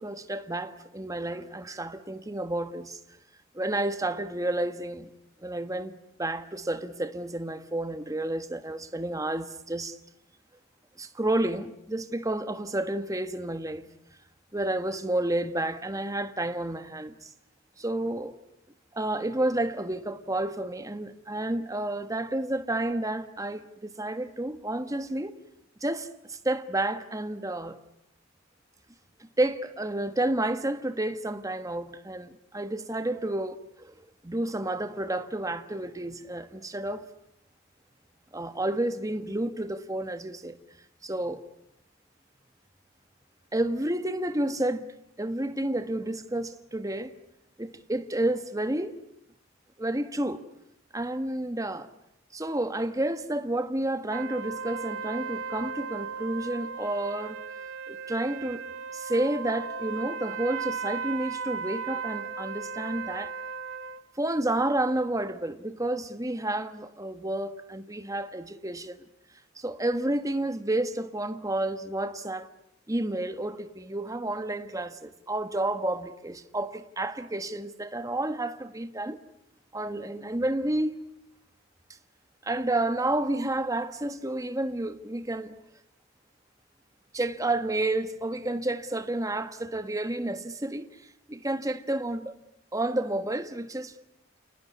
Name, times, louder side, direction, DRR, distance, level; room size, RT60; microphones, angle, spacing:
voice 1, 0.0-3.0 3.5-5.1 5.4-10.0 11.0-13.9 14.5-17.3 17.8-18.3 18.9-25.3 25.8-27.8 29.4-33.9 34.2-37.1 38.3-40.6 41.0-41.4 43.5-47.1 47.6-48.9 49.8-50.4 50.9-51.9 52.3-57.4 57.9-58.6 58.9-63.3 64.2-69.0 69.6-72.5 72.9-79.2 79.7-80.9 82.4-85.6 87.1-90.9 91.3-92.3 92.7-94.0, right 1 dB, 15° right, 1.3 m, -30 dB
sound 1, 54.1-64.0, right 5 dB, 70° right, 2.2 m, -36 dB
28.5 x 19.5 x 9.6 m
head